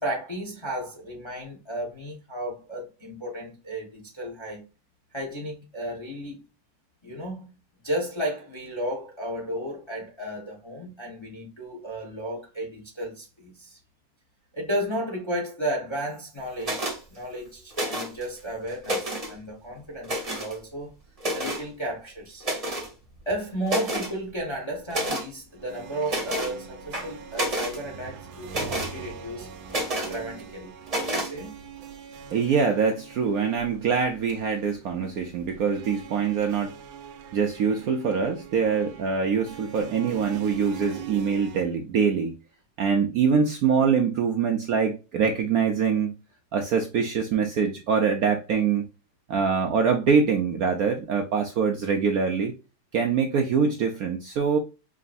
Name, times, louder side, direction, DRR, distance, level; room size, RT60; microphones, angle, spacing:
voice 1, 0.0-4.6 5.1-6.5 7.0-7.5 7.8-13.8 14.5-20.9 21.3-22.5 23.3-29.5 30.1-31.6, right 1 dB, 20° left, 0.8 m, -33 dB
sound 1, 16.6-17.0 17.7-18.2 18.7-19.3 20.0-20.5 21.2-21.6 22.4-22.9 23.3-23.4 23.7-24.1 24.9-25.3 26.1-26.5 26.9-27.8 28.5-28.9 29.7-30.2 30.9-31.3, right 1 dB, 25° right, 0.9 m, -29 dB
sound 2, 25.5-41.6, right 7 dB, 90° right, 1.4 m, -43 dB
voice 2, 32.3-36.8 37.3-42.4 42.8-46.2 46.5-48.8 49.3-52.5 52.9-54.6, right 6 dB, 70° right, 0.9 m, -24 dB
4.9 x 3.0 x 2.5 m
omnidirectional pair, 2.0 m